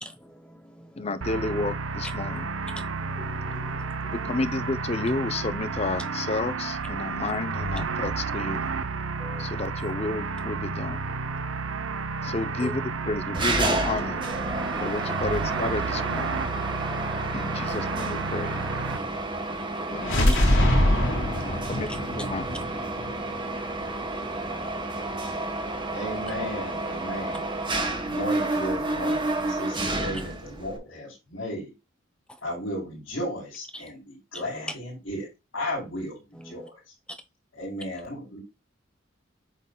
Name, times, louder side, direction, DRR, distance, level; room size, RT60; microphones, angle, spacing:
voice 1, 0.0-1.3 2.2-2.4 3.0-4.5 9.2-9.9 12.2-12.7 14.8-15.2 17.3-17.7 19.8-20.4 21.2-22.6 23.7-25.1 32.3-32.4 33.7-33.8 34.3-34.7 36.3-36.7, equal, 5° left, 1.0 m, -44 dB
voice 2, 1.0-2.4 4.2-8.7 9.4-11.0 12.2-14.3 14.8-16.4 17.3-18.6 19.9-20.4 21.4-22.5, left 3 dB, 30° left, 0.6 m, -31 dB
sound 1, 1.2-19.0, right 4 dB, 85° right, 0.7 m, -31 dB
Mechanisms, 13.3-30.8, right 2 dB, 25° right, 1.4 m, -30 dB
sound 2, 20.0-23.8, left 1 dB, 90° left, 2.8 m, -24 dB
voice 3, 25.9-27.5 28.1-31.7 32.4-35.3 35.5-36.8 37.5-38.4, left 1 dB, 70° left, 3.7 m, -34 dB
8.1 x 6.2 x 2.3 m
head